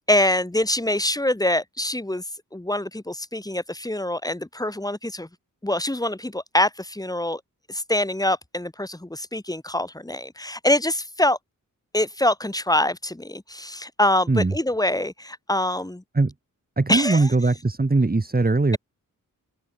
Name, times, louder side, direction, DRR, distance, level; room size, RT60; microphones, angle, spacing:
voice 1, 0.0-2.2 2.5-5.3 5.6-7.4 7.7-11.4 11.9-16.0 16.9-17.3, left 1 dB, 10° left, 3.2 m, -24 dB
voice 2, 16.8-18.8, right 3 dB, 25° right, 4.7 m, -20 dB
open air
cardioid pair, 80°, 34 cm